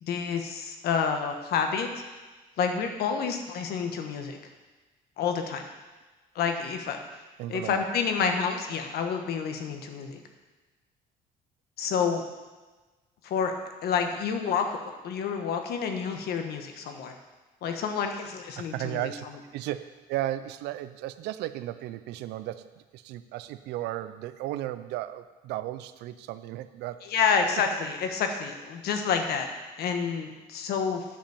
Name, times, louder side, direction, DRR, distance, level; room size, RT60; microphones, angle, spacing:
voice 1, 0.0-2.0 2.6-4.4 5.2-5.7 6.3-7.0 7.5-10.2 11.8-12.2 13.2-13.5 13.8-17.2 17.6-19.1 27.0-29.5 29.8-31.0, left 6 dB, 70° left, 5 dB, 1.3 m, -29 dB
voice 2, 7.4-7.8 18.6-19.3 19.5-27.1, right 14 dB, 85° right, 12 dB, 0.5 m, -35 dB
10.0 x 5.2 x 7.1 m, 1.2 s
cardioid pair, 110°, 17 cm